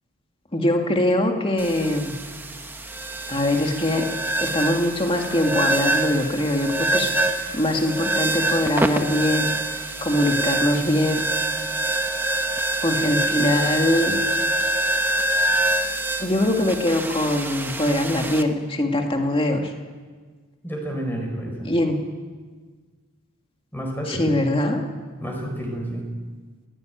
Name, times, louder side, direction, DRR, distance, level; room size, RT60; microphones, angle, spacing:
voice 1, 0.5-2.1 3.3-4.1 4.4-9.5 10.0-11.2 12.8-14.2 16.2-19.7 21.7-22.0 24.1-24.8, left 1 dB, 25° left, 3 dB, 2.2 m, -22 dB
sound 1, 1.6-18.4, right 2 dB, 10° right, 1.0 m, -25 dB
voice 2, 20.6-21.7 23.7-24.4 25.2-26.1, right 1 dB, 10° left, 1 dB, 4.7 m, -30 dB
21.0 x 17.0 x 9.2 m, 1.5 s
head